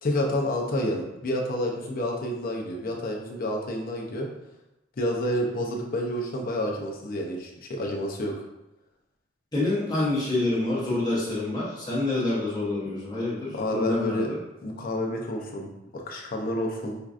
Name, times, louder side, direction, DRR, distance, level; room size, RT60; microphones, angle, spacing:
voice 1, 0.0-4.3 5.0-8.4 13.4-14.3 14.6-17.0, left 1 dB, 45° left, 0 dB, 0.6 m, -29 dB
voice 2, 9.5-14.4, left 2 dB, 20° left, -7 dB, 1.0 m, -27 dB
4.4 x 2.4 x 2.4 m, 0.92 s
head